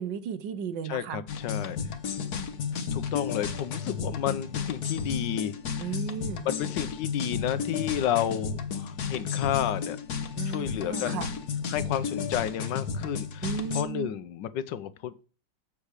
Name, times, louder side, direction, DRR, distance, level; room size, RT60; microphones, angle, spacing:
voice 1, 0.0-1.2 5.8-6.5 10.4-11.3 13.4-14.1, right 7 dB, 80° right, 1.6 m, -34 dB
voice 2, 0.9-1.8 2.9-5.5 5.8-5.9 6.4-10.0 10.4-11.3 11.7-15.2, left 10 dB, 75° left, 1.3 m, -31 dB
sound 1, 1.3-13.8, left 6 dB, 60° left, 1.5 m, -33 dB
7.5 x 7.4 x 4.9 m
omnidirectional pair, 2.0 m